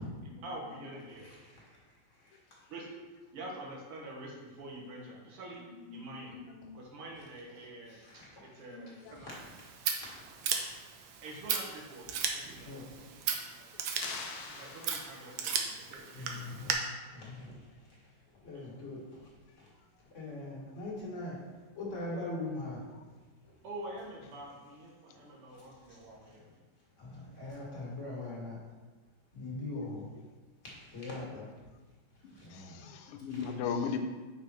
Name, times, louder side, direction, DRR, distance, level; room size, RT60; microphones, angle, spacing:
voice 1, 0.2-1.3 2.7-2.9 3.3-5.6 5.9-6.4 6.7-9.3 11.2-12.1 12.3-13.1 14.6-16.5 18.5-18.7 23.6-26.5, right 1 dB, 90° right, -2 dB, 2.2 m, -46 dB
voice 2, 1.2-1.8 2.1-2.6 7.9-8.6 9.2-9.3 9.9-10.7 12.5-12.9 16.1-16.8 17.1-19.7 20.1-21.5 21.7-23.2 23.4-23.5 25.5-25.6 25.9-26.5 27.0-28.6 29.3-30.1 30.6-31.5 32.3-32.9 33.3-33.4, left 2 dB, 35° left, -5 dB, 1.9 m, -43 dB
voice 3, 6.3-6.7 8.7-9.2 32.2-34.0, left 6 dB, 90° left, 5 dB, 1.6 m, -38 dB
Scissors, 9.3-16.7, right 7 dB, 75° right, 1.4 m, -37 dB
sound 1, 14.0-15.5, left 4 dB, 70° left, 0.9 m, -43 dB
5.3 x 5.2 x 4.4 m, 1.3 s
omnidirectional pair, 2.4 m